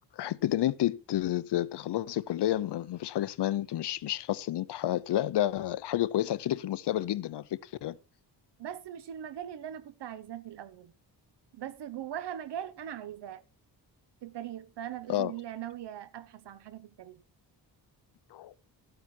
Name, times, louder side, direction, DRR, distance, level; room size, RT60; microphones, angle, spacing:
voice 1, 0.2-8.0 15.1-15.3 18.3-18.5, left 13 dB, 75° left, 0.7 m, -30 dB
voice 2, 8.6-10.9 11.5-13.4 14.2-17.2, right 10 dB, 75° right, 1.1 m, -40 dB
13.0 x 8.8 x 4.3 m
wide cardioid pair, 155°, 41 cm